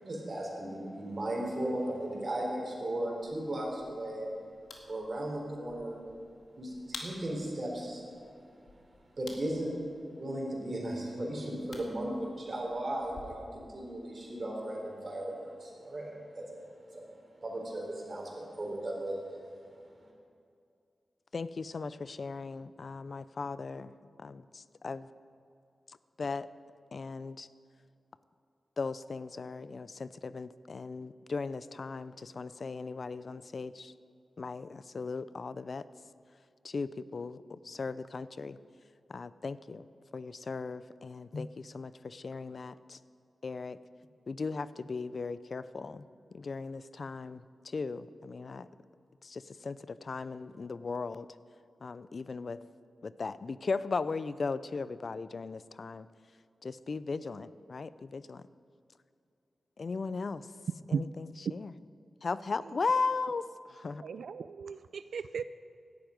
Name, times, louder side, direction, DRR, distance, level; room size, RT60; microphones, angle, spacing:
voice 1, 0.0-4.3 4.9-6.0 6.6-8.1 9.1-9.8 10.1-16.6 16.9-17.0 17.4-19.4, right 1 dB, 45° right, -1 dB, 4.0 m, -36 dB
sound 1, 3.2-13.2, left 3 dB, 80° left, 2.0 m, -52 dB
voice 2, 21.3-23.9 24.2-25.1 25.9-26.5 26.9-27.5 28.8-33.9 34.4-35.9 36.6-38.6 39.1-39.8 40.1-43.0 43.4-43.8 44.3-46.1 46.3-48.7 49.2-51.3 51.8-52.6 53.0-56.1 56.6-58.4 59.8-60.5 60.9-61.7 62.2-64.0, left 4 dB, 55° left, 16 dB, 0.5 m, -37 dB
voice 3, 64.0-65.4, right 6 dB, 90° right, 13 dB, 0.3 m, -36 dB
17.0 x 12.0 x 5.2 m, 2.4 s
wide cardioid pair, 85°, 0 cm